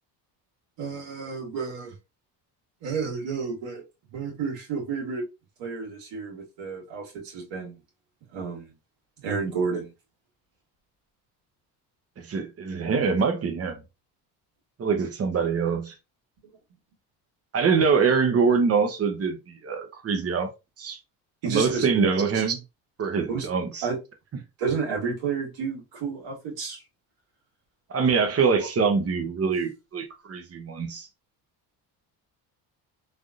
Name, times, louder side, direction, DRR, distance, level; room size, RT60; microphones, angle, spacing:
voice 1, 0.8-2.0 2.8-3.8 4.1-5.2 5.6-7.8 8.3-8.7 9.2-9.9 21.4-22.5 23.2-23.5 23.8-24.0 24.6-26.8, right 5 dB, 70° right, 1.7 m, -31 dB
voice 2, 12.2-13.8 14.8-15.9 17.5-20.5 20.8-21.0 21.5-22.6 23.0-23.9 27.9-31.1, right 5 dB, 35° right, 0.9 m, -24 dB
3.4 x 2.6 x 2.4 m
supercardioid pair, 85°, 44 cm